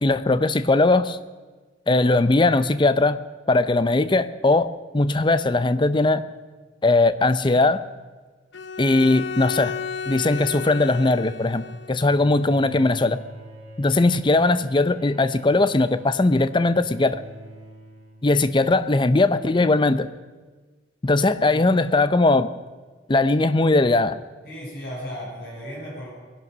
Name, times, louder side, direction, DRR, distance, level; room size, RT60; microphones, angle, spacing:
voice 1, 0.0-1.2 1.9-3.2 3.5-6.2 6.8-7.8 8.8-9.7 10.1-13.2 13.8-17.2 18.2-20.1 21.0-22.5 23.1-24.2, left 2 dB, 25° left, 13 dB, 0.5 m, -19 dB
Bowed string instrument, 8.5-12.0, left 6 dB, 70° left, 0.8 m, -33 dB
Bowed string instrument 2, 12.0-18.8, equal, 30° right, 5.3 m, -45 dB
voice 2, 24.4-26.1, equal, 55° left, -5 dB, 5.8 m, -35 dB
20.5 x 11.0 x 6.2 m, 1.4 s
head